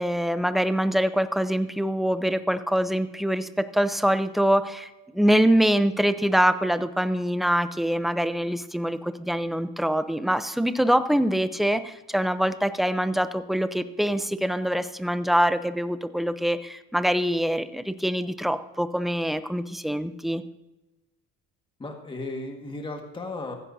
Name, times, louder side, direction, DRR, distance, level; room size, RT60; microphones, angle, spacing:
voice 1, 0.0-20.4, equal, ahead, 11 dB, 0.6 m, -24 dB
voice 2, 21.8-23.5, left 2 dB, 15° left, 2 dB, 1.7 m, -35 dB
16.0 x 15.0 x 2.7 m, 1.0 s
cardioid pair, 130°, 29 cm